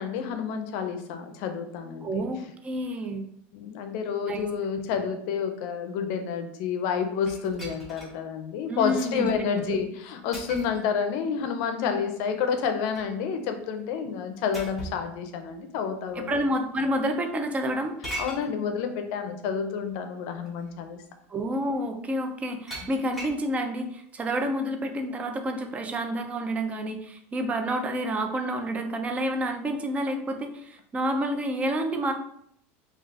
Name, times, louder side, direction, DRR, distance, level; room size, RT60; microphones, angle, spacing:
voice 1, 0.0-2.1 3.5-16.3 18.2-21.0, left 6 dB, 65° left, 7 dB, 0.5 m, -29 dB
voice 2, 2.0-3.3 4.3-4.4 8.7-9.8 16.2-17.9 21.3-32.1, right 1 dB, 20° right, 5 dB, 0.4 m, -29 dB
sound 1, 7.3-8.2 8.7-8.8 10.3-10.9 12.5-13.2 14.5-15.1 16.1-16.2 18.0-18.5 19.9-20.0 20.4-20.7 22.7-23.4, right 1 dB, ahead, 1.0 m, -39 dB
2.4 x 2.3 x 3.9 m, 0.70 s
supercardioid pair, 130°, 7 cm